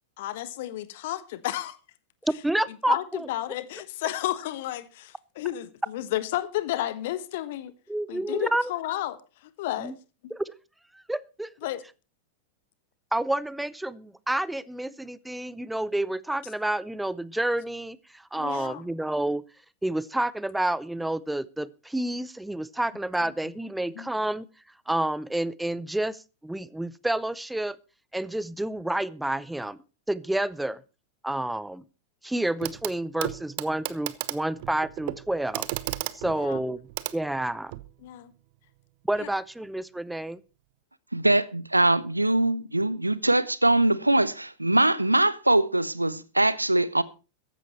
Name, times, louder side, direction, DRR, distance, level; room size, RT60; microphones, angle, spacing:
voice 1, 0.2-1.8 2.7-7.7 8.1-9.9 10.2-10.3 11.6-11.8 18.4-18.8 23.2-23.3 23.9-24.1 36.2-36.6 38.0-38.3 39.2-39.3, left 14 dB, 50° left, 1.3 m, -32 dB
voice 2, 2.2-3.3 7.9-8.7 9.8-9.9 10.3-10.5 10.9-11.5 13.1-19.4 19.8-24.5 24.9-27.8 28.1-29.8 30.1-30.8 31.2-31.8 32.2-35.7 36.1-36.8 37.1-37.7 39.1-40.4, right 1 dB, 5° right, 0.6 m, -29 dB
Clock, 32.6-32.9 33.2-37.9 39.1-39.2, right 18 dB, 50° right, 0.7 m, -35 dB
voice 3, 41.1-47.0, right 1 dB, 85° right, 0.7 m, -22 dB
14.5 x 11.0 x 4.3 m
figure-of-eight pair, 90°, 0 cm